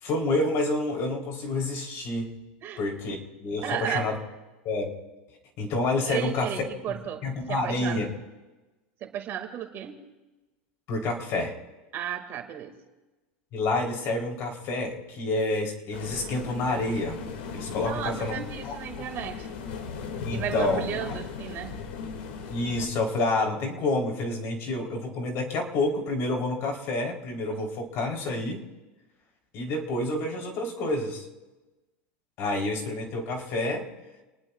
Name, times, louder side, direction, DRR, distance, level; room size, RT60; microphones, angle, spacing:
voice 1, 0.0-2.3 2.8-4.2 4.7-5.0 5.6-6.7 7.2-8.1 10.9-11.5 13.5-17.2 17.5-18.4 18.6-19.0 20.2-20.9 22.5-28.6 29.5-31.2 32.4-33.9, left 2 dB, 50° left, 1 dB, 3.5 m, -28 dB
voice 2, 3.6-4.1 6.1-8.0 9.0-10.0 11.9-12.7 17.8-19.6 20.3-21.8 27.5-27.6, right 10 dB, 40° right, 5 dB, 2.0 m, -34 dB
sound 1, 15.9-22.9, left 5 dB, 75° left, 2.1 m, -37 dB
28.5 x 19.5 x 2.4 m, 1.1 s
supercardioid pair, 130°, 6 cm